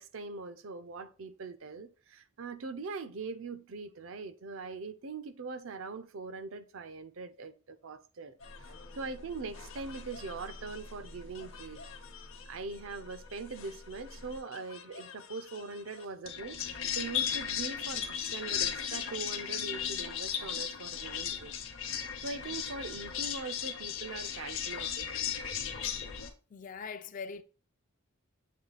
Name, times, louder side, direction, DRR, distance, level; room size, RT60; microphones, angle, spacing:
voice 1, 0.0-8.4 8.7-11.8 12.5-16.6 16.9-21.6 21.8-25.2, right 4 dB, 65° right, 0.5 m, -42 dB
sound 1, 8.4-26.3, left 8 dB, 60° left, 0.8 m, -38 dB
voice 2, 26.5-27.4, left 5 dB, 35° left, 0.4 m, -41 dB
7.5 x 3.2 x 3.9 m
head